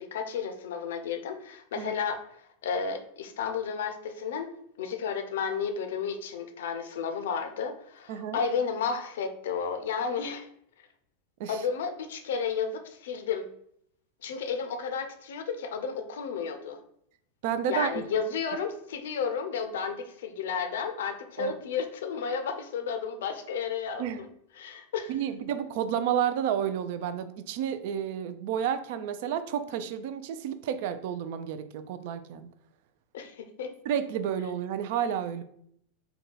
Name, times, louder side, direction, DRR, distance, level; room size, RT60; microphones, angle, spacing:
voice 1, 0.0-2.2 2.6-4.5 4.8-10.5 11.5-13.5 14.2-16.8 17.7-24.3 24.6-25.1 33.1-33.7, left 6 dB, 70° left, 6 dB, 0.5 m, -32 dB
voice 2, 8.1-8.4 11.4-11.6 17.4-18.0 21.4-21.5 24.0-24.2 25.1-32.5 33.8-35.4, right 9 dB, 60° right, 11 dB, 0.3 m, -31 dB
3.7 x 2.3 x 3.8 m, 0.69 s
hypercardioid pair, 90°, 0 cm